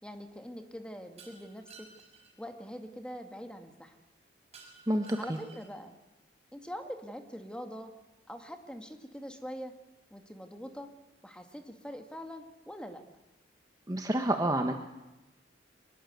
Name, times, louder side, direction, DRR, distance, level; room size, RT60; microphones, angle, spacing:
voice 1, 0.0-1.9 2.4-4.0 5.2-5.9 6.5-7.9 8.3-9.7 10.1-10.9 11.2-13.0, equal, 5° left, 6 dB, 2.0 m, -43 dB
Shatter, 1.2-2.3 4.5-5.8, right 4 dB, 35° right, 5.7 m, -54 dB
voice 2, 4.9-5.4 13.9-14.7, right 1 dB, 20° right, 5 dB, 1.3 m, -29 dB
24.0 x 21.5 x 8.2 m, 1.0 s
head